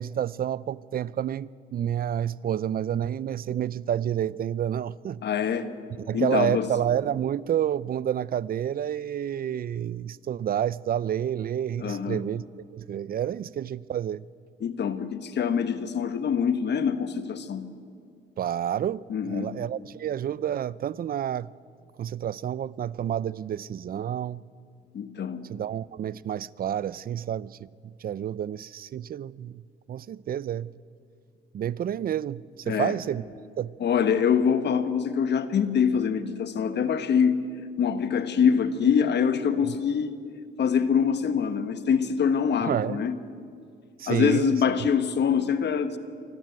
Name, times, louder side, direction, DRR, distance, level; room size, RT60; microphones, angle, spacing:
voice 1, 0.0-5.2 6.1-12.4 12.7-14.3 18.4-21.5 22.0-24.4 25.5-30.7 31.5-33.2 33.6-33.8 42.6-43.0 44.0-44.6, right 10 dB, 50° right, 0.5 m, -29 dB
voice 2, 5.2-5.7 6.1-6.7 11.8-12.2 14.6-17.6 19.1-19.5 24.9-25.4 32.7-32.9 33.8-37.4 37.8-40.2 40.6-43.1 44.1-46.0, left 7 dB, 60° left, 1.4 m, -24 dB
24.0 x 13.5 x 9.3 m
cardioid pair, 90°, 20 cm